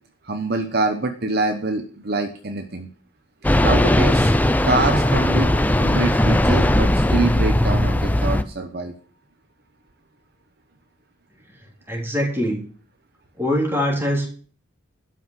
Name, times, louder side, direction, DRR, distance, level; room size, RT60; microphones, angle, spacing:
voice 1, 0.2-2.9 3.6-4.3 4.6-5.5 5.8-8.9, right 2 dB, 50° right, 6 dB, 1.0 m, -25 dB
sound 1, 3.4-8.4, left 1 dB, 10° left, 0.5 m, -18 dB
Bell, 4.8-8.4, right 1 dB, 30° left, 1.7 m, -39 dB
voice 2, 11.9-12.6 13.4-14.3, equal, 10° right, -1 dB, 3.6 m, -22 dB
12.0 x 6.0 x 7.6 m, 0.43 s
head